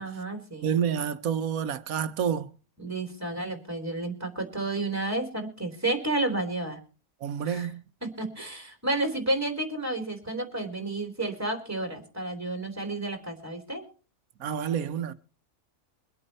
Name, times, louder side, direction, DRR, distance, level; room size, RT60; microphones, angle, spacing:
voice 1, 0.0-0.7 2.8-6.8 7.4-7.7 8.0-13.8, right 2 dB, 10° right, 3.4 m, -31 dB
voice 2, 0.6-2.5 7.2-7.8 14.4-15.1, right 8 dB, 80° right, 1.3 m, -28 dB
23.5 x 8.6 x 4.2 m
omnidirectional pair, 1.5 m